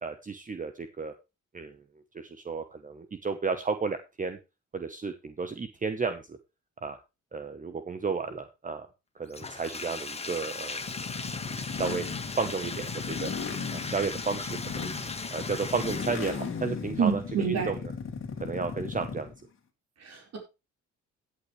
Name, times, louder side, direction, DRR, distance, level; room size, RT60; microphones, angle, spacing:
voice 1, 0.0-1.1 1.5-1.8 2.1-4.4 4.7-6.4 6.8-7.0 7.3-8.9 9.1-10.8 11.5-12.0 12.4-13.3 13.7-14.9 15.3-17.2 17.5-17.9 18.4-19.3, right 4 dB, 25° right, 9 dB, 1.1 m, -33 dB
Bathtub (filling or washing), 9.3-16.6, left 4 dB, 20° left, 1.6 m, -38 dB
sound 1, 10.8-19.4, left 5 dB, 45° left, 2.2 m, -36 dB
voice 2, 17.0-17.7 20.0-20.4, right 6 dB, 60° right, 2 dB, 4.8 m, -28 dB
15.0 x 8.4 x 3.3 m, 0.27 s
cardioid pair, 90°, 30 cm